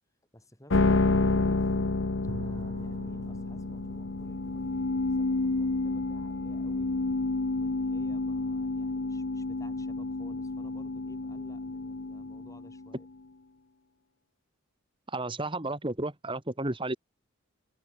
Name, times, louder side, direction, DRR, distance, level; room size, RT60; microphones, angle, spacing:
voice 1, 0.3-1.7 2.4-7.0 7.6-13.1, left 1 dB, 15° left, 5.5 m, -55 dB
sound 1, 0.7-13.0, left 3 dB, 55° left, 0.8 m, -29 dB
Bowed string instrument, 2.3-7.1, right 1 dB, 50° right, 1.6 m, -46 dB
voice 2, 15.1-17.0, right 2 dB, 20° right, 1.5 m, -32 dB
head